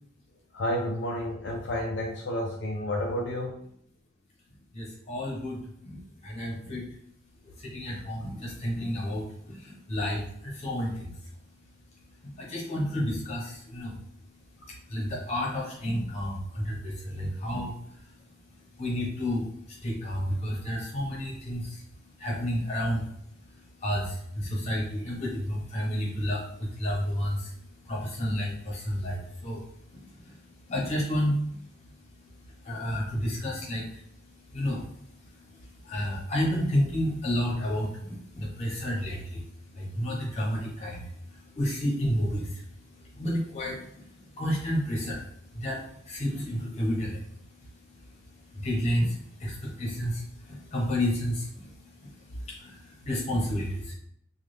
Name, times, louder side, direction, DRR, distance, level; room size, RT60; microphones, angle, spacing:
voice 1, 0.5-3.6, left 1 dB, 60° left, -2 dB, 0.4 m, -30 dB
voice 2, 4.7-6.9 7.6-11.1 12.2-14.0 14.7-17.7 18.8-21.8 22.2-23.1 23.8-27.5 27.8-29.6 30.2-30.3 30.7-31.6 32.6-34.0 34.5-34.8 35.6-39.4 39.7-42.6 43.1-45.2 45.5-47.2 48.5-51.7 52.0-53.9, equal, 35° left, -3 dB, 1.0 m, -31 dB
3.2 x 2.4 x 3.3 m, 0.69 s
head